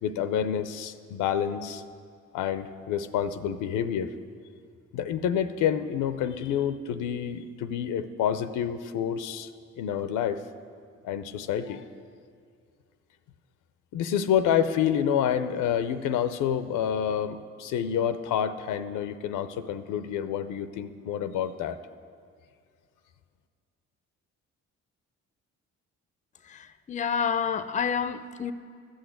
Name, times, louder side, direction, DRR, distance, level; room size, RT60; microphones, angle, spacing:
voice 1, 0.0-1.8 2.3-4.1 4.9-9.5 9.8-10.4 11.0-11.8 13.9-21.8, left 9 dB, 90° left, 0.6 m, -28 dB
voice 2, 26.4-28.5, left 7 dB, 25° left, 0.5 m, -29 dB
14.0 x 6.5 x 7.9 m
cardioid pair, 90°, 30 cm